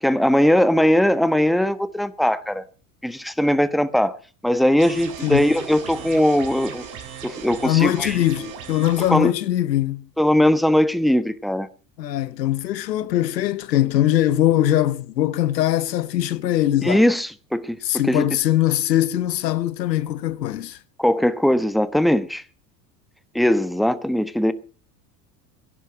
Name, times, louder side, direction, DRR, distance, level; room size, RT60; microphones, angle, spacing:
voice 1, 0.0-2.6 3.0-4.2 4.4-6.8 7.2-8.2 9.1-9.3 10.2-11.7 16.8-17.8 18.0-18.2 21.0-22.4 23.3-24.5, left 1 dB, ahead, 1.2 m, -19 dB
sound 1, 4.8-9.2, right 7 dB, 60° right, 5.9 m, -37 dB
voice 2, 7.6-10.1 12.0-17.1 17.8-20.8, left 13 dB, 90° left, 1.0 m, -21 dB
17.5 x 11.0 x 7.3 m
hypercardioid pair, 85°, 48 cm